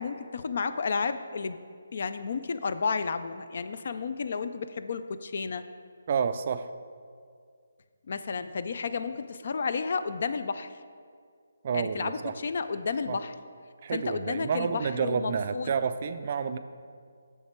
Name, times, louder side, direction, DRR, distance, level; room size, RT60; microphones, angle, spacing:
voice 1, 0.0-1.6 1.9-5.6 8.1-10.8 11.7-13.3 13.9-15.7, left 5 dB, 50° left, 12 dB, 0.3 m, -32 dB
voice 2, 6.1-6.7 11.6-12.3 13.1-13.2 13.8-16.6, right 6 dB, 35° right, 11 dB, 0.3 m, -29 dB
7.3 x 6.7 x 4.4 m, 2.1 s
hypercardioid pair, 170°, 0 cm